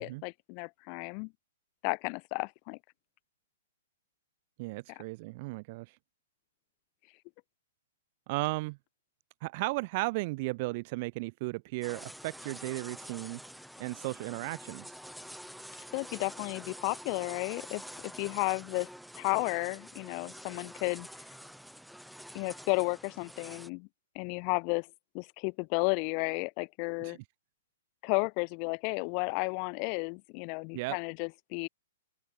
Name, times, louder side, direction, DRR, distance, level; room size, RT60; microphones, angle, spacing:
voice 1, 0.0-1.3 1.8-2.8 4.9-5.0 15.9-18.9 19.2-21.1 22.3-23.9 24.1-24.9 25.1-27.2 28.0-31.7, left 40 dB or more, 40° left, 0.7 m, -33 dB
voice 2, 4.6-6.0 8.3-8.8 9.4-13.4 13.8-14.9 27.0-27.2 30.7-31.0, right 24 dB, 45° right, 0.7 m, -35 dB
sound 1, 11.8-23.7, equal, ahead, 1.9 m, -47 dB
open air
figure-of-eight pair, 115°, 0 cm